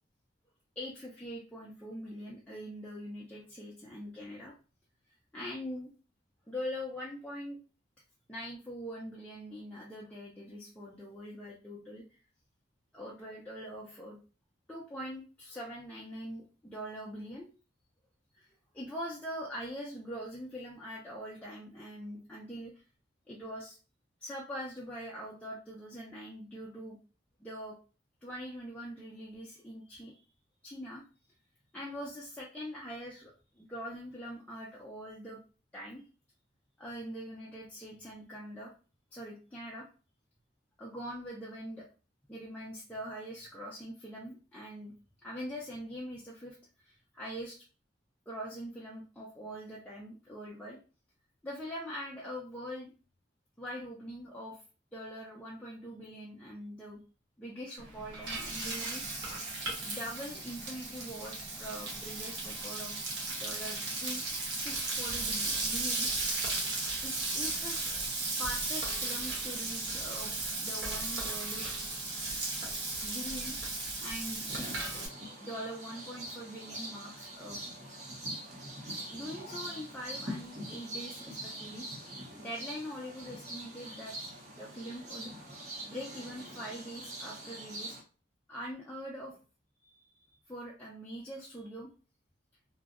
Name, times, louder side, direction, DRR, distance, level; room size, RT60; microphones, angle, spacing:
voice 1, 0.8-4.5 5.3-5.9 6.5-7.6 8.3-12.0 12.9-14.2 14.7-17.5 18.4-18.5 18.7-22.7 23.3-23.8 24.2-27.0 27.4-27.8 28.2-30.2 30.6-31.0 31.7-35.4 35.7-36.0 36.8-38.7 39.1-39.9 40.8-41.9 42.3-44.9 45.2-46.6 46.8-47.6 48.3-50.8 51.4-52.9 53.6-54.6 54.9-57.0 57.4-59.0 59.8-63.0 63.4-64.2 64.5-66.1 67.0-67.8 68.4-70.3 70.6-71.7 73.0-74.4 75.4-77.6 79.1-81.9 82.4-84.2 84.6-85.3 85.9-88.0 88.5-89.4 89.8-91.9, equal, 5° left, -5 dB, 0.3 m, -43 dB
Frying (food), 57.8-75.1, right 2 dB, 60° right, 0.8 m, -35 dB
sound 1, 74.5-88.0, right 1 dB, 35° right, 0.6 m, -43 dB
2.6 x 2.0 x 2.4 m, 0.35 s
head